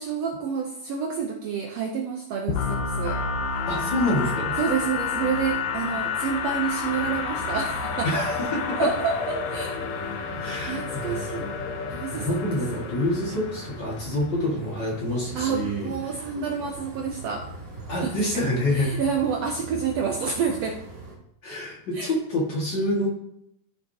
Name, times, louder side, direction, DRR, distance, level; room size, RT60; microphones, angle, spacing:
voice 1, 0.0-3.2 4.6-8.2 8.8-9.8 10.4-11.5 11.9-12.4 15.3-17.5 18.0-18.1 18.7-20.8 21.9-22.1, right 6 dB, 75° right, 2 dB, 1.6 m, -29 dB
sound 1, 2.5-14.3, left 5 dB, 85° left, 2.6 m, -30 dB
voice 2, 3.7-4.6 8.0-8.9 10.4-11.2 12.1-16.1 17.9-18.9 21.4-23.1, left 1 dB, 40° left, -3 dB, 2.1 m, -27 dB
sound 2, 6.9-21.1, right 3 dB, 20° right, 2.6 m, -41 dB
14.0 x 6.4 x 2.8 m, 0.77 s
omnidirectional pair, 3.8 m